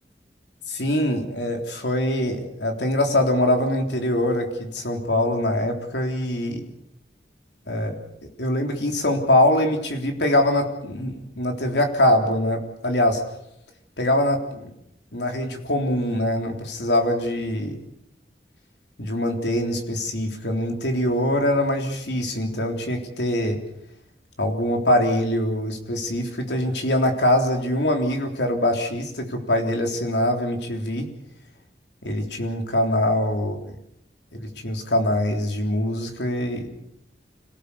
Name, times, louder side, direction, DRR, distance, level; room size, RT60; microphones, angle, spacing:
voice 1, 0.7-6.6 7.7-8.0 8.4-13.2 14.0-14.7 15.1-17.8 19.0-23.6 24.4-31.1 32.0-33.7 34.3-36.8, left 1 dB, 85° left, 3 dB, 3.7 m, -23 dB
26.5 x 17.5 x 7.0 m, 0.79 s
head